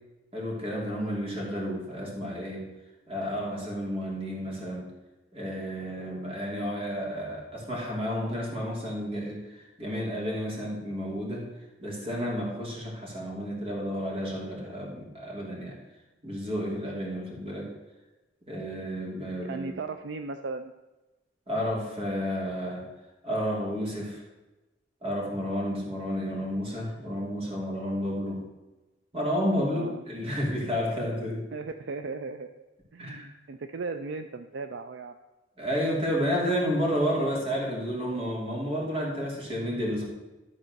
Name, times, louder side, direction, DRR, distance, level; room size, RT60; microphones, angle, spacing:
voice 1, 0.3-2.7 3.1-4.9 5.3-11.5 11.8-15.8 16.2-17.7 18.5-19.8 21.5-22.9 23.2-24.2 25.0-28.5 29.1-31.5 33.0-33.3 35.6-40.0, equal, 30° right, -2 dB, 2.7 m, -31 dB
voice 2, 19.4-20.7 29.6-30.0 31.5-32.5 32.9-35.2, right 4 dB, 65° right, 8 dB, 0.4 m, -36 dB
11.5 x 4.2 x 6.4 m, 1.1 s
head